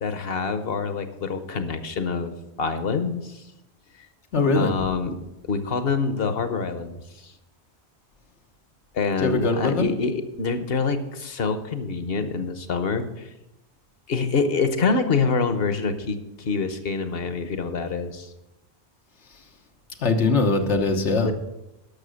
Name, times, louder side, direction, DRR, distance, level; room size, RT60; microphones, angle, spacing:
voice 1, 0.0-3.4 4.5-5.1 5.4-7.3 8.9-13.3 14.1-18.3 21.2-21.3, left 4 dB, 60° left, 9 dB, 1.2 m, -26 dB
voice 2, 4.3-4.7 9.2-9.9 20.0-21.3, left 3 dB, 90° left, 4 dB, 1.4 m, -21 dB
12.0 x 6.4 x 6.4 m, 0.93 s
omnidirectional pair, 1.1 m